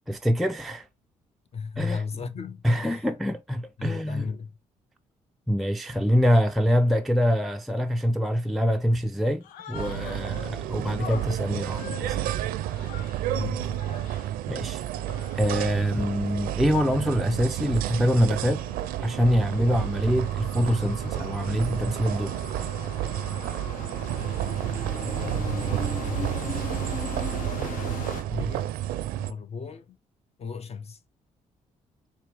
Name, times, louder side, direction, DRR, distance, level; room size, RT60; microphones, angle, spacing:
voice 1, 0.1-0.9 1.8-2.0 2.6-4.3 5.5-12.3 14.5-14.8 15.4-18.6 19.0-22.3, equal, ahead, 0.4 m, -25 dB
voice 2, 1.5-3.1 3.8-4.5 13.3-13.8 24.1-26.6 28.3-28.7 29.1-30.0 30.4-31.0, left 5 dB, 45° left, 0.8 m, -36 dB
Human voice, 9.4-10.6 11.0-13.3 13.7-14.3 14.9-15.6, left 9 dB, 90° left, 0.4 m, -43 dB
sound 1, 9.7-29.3, right 13 dB, 85° right, 0.4 m, -31 dB
sound 2, 15.3-28.2, left 4 dB, 70° left, 1.2 m, -40 dB
4.4 x 3.1 x 3.3 m
supercardioid pair, 65°, 14 cm